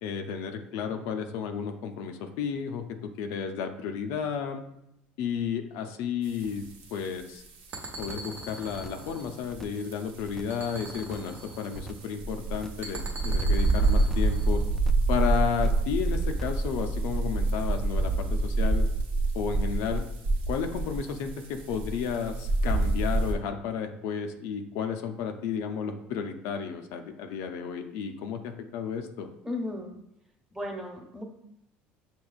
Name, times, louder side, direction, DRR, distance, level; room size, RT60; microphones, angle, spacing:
voice 1, 0.0-4.6 5.2-6.6 6.9-7.4 8.0-14.6 15.1-18.9 19.3-20.0 20.5-29.3, left 7 dB, 75° left, 5 dB, 0.4 m, -32 dB
sound 1, 6.2-23.3, right 2 dB, 80° right, 0.7 m, -28 dB
sound 2, 7.7-10.0 10.5-12.1 12.8-14.7, right 2 dB, 45° right, 0.8 m, -42 dB
sound 3, 8.0-8.4 8.7-9.1 9.4-9.9 10.2-10.7 11.0-11.4 11.7-12.2 12.5-12.9 13.2-13.7 14.0-14.4 14.7-15.2 15.5-15.9 16.2-16.7 17.0-17.1, left 1 dB, 5° left, 0.3 m, -45 dB
voice 2, 29.4-30.0 30.5-31.2, left 1 dB, 15° right, 1 dB, 1.1 m, -35 dB
6.2 x 2.9 x 2.4 m, 0.79 s
supercardioid pair, 90°, 5 cm